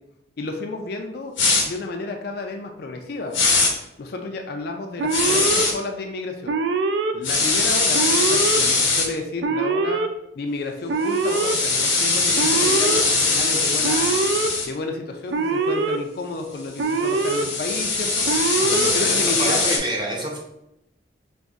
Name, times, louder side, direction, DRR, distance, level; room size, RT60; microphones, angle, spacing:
voice 1, 0.4-1.3 1.6-3.3 4.0-6.6 7.1-10.0 10.3-14.2 14.6-18.2 18.6-19.6, left 3 dB, 55° left, 4 dB, 0.4 m, -31 dB
sound 1, 1.4-1.6 3.3-3.7 5.1-5.7 7.2-9.1 11.1-14.7 16.8-19.8, left 3 dB, 85° left, 1.0 m, -21 dB
Alarm, 5.0-5.6 6.5-7.1 7.9-8.6 9.4-10.1 10.9-11.5 12.3-13.0 13.8-14.5 15.3-16.0 16.8-17.4 18.2-18.9, right 4 dB, 65° right, 0.3 m, -23 dB
voice 2, 18.6-20.4, right 1 dB, 25° right, -1 dB, 0.7 m, -28 dB
5.1 x 2.6 x 2.4 m, 0.84 s
head